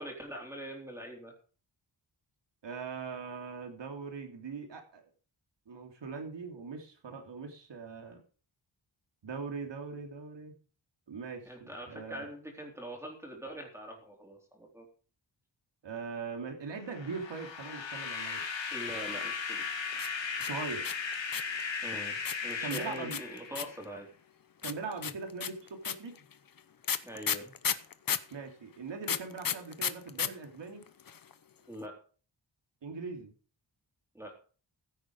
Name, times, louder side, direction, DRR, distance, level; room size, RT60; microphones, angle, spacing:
voice 1, 0.0-1.3 11.4-14.9 18.7-19.7 21.8-24.1 27.0-27.5 31.7-32.0 34.1-34.3, equal, 5° right, 0 dB, 3.7 m, -43 dB
voice 2, 2.6-5.0 5.7-8.2 9.2-10.5 11.1-12.3 15.8-18.4 20.4-20.9 22.6-23.2 24.6-26.2 28.3-30.8 32.8-33.3, right 4 dB, 70° right, 4 dB, 3.2 m, -41 dB
sound 1, 16.9-23.9, left 5 dB, 80° left, 2.7 m, -37 dB
sound 2, 19.9-21.6 22.2-23.8 24.6-28.3 29.0-30.3 30.5-30.6 30.8-31.3, left 8 dB, 50° left, 0.9 m, -33 dB
15.5 x 8.5 x 4.9 m, 0.39 s
wide cardioid pair, 165°, 44 cm